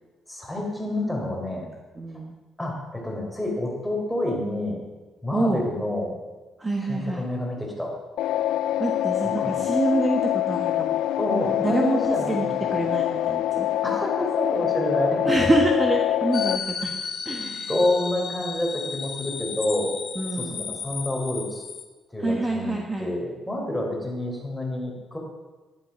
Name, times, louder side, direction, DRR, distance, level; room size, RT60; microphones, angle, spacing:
voice 1, 0.3-1.7 2.6-4.8 5.2-6.2 6.9-7.9 9.2-9.6 11.2-12.8 13.8-15.2 17.7-19.9 20.4-21.6 22.1-25.2, left 1 dB, 5° left, -1 dB, 3.8 m, -28 dB
voice 2, 1.9-2.3 5.3-5.6 6.6-7.2 8.8-11.0 11.6-13.7 15.2-16.9 17.2-17.7 20.1-20.6 22.2-23.1, right 2 dB, 20° right, 1 dB, 1.4 m, -26 dB
sound 1, 8.2-16.6, left 13 dB, 85° left, 0.3 m, -25 dB
sound 2, 16.3-21.8, left 6 dB, 50° left, 1.1 m, -34 dB
11.0 x 10.5 x 5.9 m, 1.2 s
cardioid pair, 90°, 0 cm